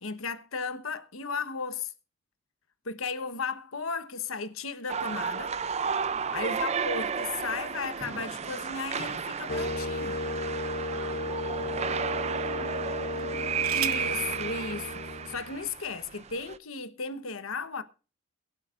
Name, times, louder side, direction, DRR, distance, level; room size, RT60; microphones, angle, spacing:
voice 1, 0.0-1.9 2.8-5.5 6.3-10.2 13.7-17.8, left 4 dB, 75° left, 1.2 m, -35 dB
sound 1, 4.9-16.6, right 6 dB, 30° right, 0.5 m, -33 dB
voice 2, 6.0-6.5 10.9-13.1, right 1 dB, 15° right, 5.1 m, -53 dB
sound 2, 9.4-10.6 11.4-11.5 13.1-14.2 15.3-15.4 15.7-16.1, right 13 dB, 75° right, 0.8 m, -40 dB
sound 3, 9.5-15.6, left 2 dB, 45° left, 0.7 m, -34 dB
22.5 x 8.2 x 2.5 m
head